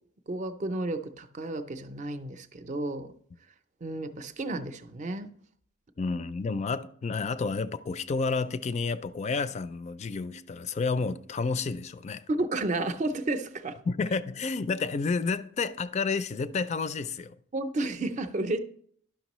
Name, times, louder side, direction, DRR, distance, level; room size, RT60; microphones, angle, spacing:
voice 1, 0.3-3.1 3.8-5.3 12.3-13.8 17.5-18.6, right 2 dB, 35° right, 0.5 m, -32 dB
voice 2, 6.0-12.2 13.9-17.4, left 4 dB, 35° left, 0.3 m, -30 dB
11.5 x 5.9 x 3.0 m
head